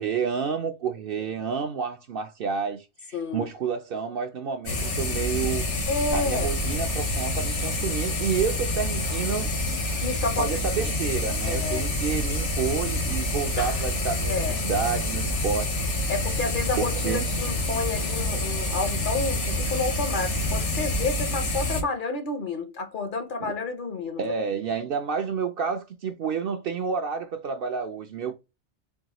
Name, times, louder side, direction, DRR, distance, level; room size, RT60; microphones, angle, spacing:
voice 1, 0.0-5.6 6.1-9.5 10.4-16.1 16.8-17.3 23.4-23.6 24.2-28.3, right 6 dB, 60° right, 0.6 m, -29 dB
voice 2, 3.1-3.5 5.9-6.5 10.0-10.5 11.5-11.9 14.3-14.6 16.1-24.3, left 3 dB, 50° left, 0.7 m, -30 dB
sound 1, 4.7-21.8, left 1 dB, 75° left, 1.5 m, -27 dB
4.7 x 2.2 x 2.9 m
omnidirectional pair, 1.2 m